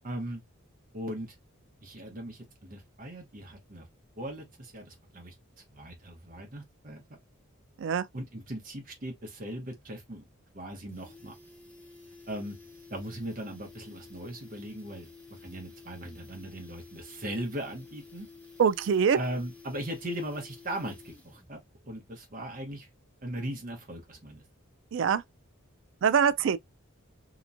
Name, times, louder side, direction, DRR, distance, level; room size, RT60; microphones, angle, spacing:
voice 1, 0.0-0.4 0.9-1.4 1.8-3.9 4.2-5.3 5.7-7.0 8.1-10.2 10.5-11.4 12.3-12.6 12.9-15.1 15.4-18.3 19.1-21.6 21.8-22.9 23.2-24.4, right 1 dB, 40° right, 0.8 m, -38 dB
sound 1, 10.4-10.5 10.7-21.6 21.8-21.9, left 4 dB, 5° left, 1.0 m, -52 dB
voice 2, 18.6-19.2 24.9-25.2 26.0-26.6, right 7 dB, 60° right, 0.3 m, -23 dB
2.9 x 2.2 x 2.5 m
head